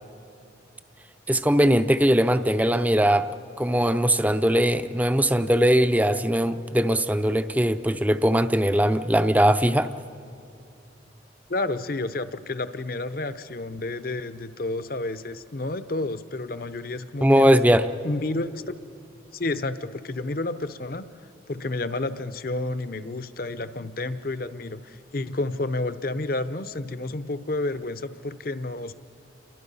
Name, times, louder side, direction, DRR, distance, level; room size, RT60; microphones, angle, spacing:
voice 1, 1.3-3.3 3.6-9.9 17.2-17.9, equal, 10° right, 11 dB, 0.5 m, -20 dB
voice 2, 11.5-17.5 18.0-18.8 19.3-21.1 21.5-28.9, left 2 dB, 50° left, 13 dB, 0.7 m, -30 dB
28.0 x 23.0 x 5.5 m, 2.6 s
head